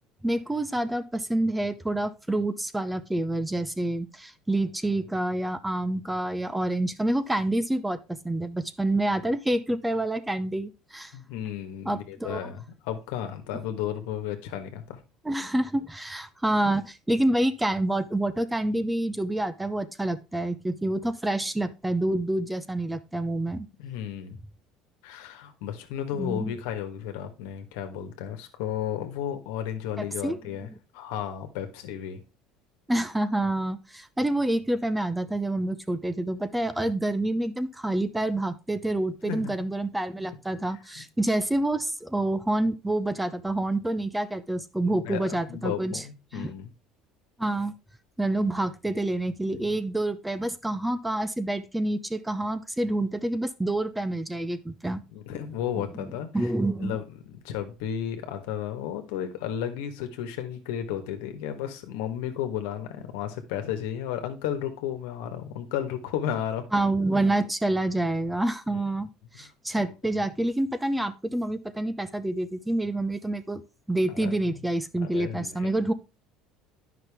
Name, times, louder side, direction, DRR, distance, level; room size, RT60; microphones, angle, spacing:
voice 1, 0.2-11.1 11.8-12.5 15.2-23.7 26.2-26.5 30.0-30.4 32.9-46.0 46.3-46.5 47.4-47.7 48.2-55.0 55.8-57.0 66.7-69.1 69.4-73.6 73.9-75.9, right 1 dB, 10° right, 0.6 m, -27 dB
voice 2, 11.1-15.0 23.8-24.4 25.0-32.2 39.2-39.5 41.0-41.1 44.8-46.7 49.5-49.8 55.1-56.3 56.8-66.7 68.7-68.8 69.3-69.5 74.1-74.6 75.0-75.7, left 10 dB, 85° left, 1.3 m, -33 dB
9.7 x 5.8 x 3.5 m
supercardioid pair, 100°, 0 cm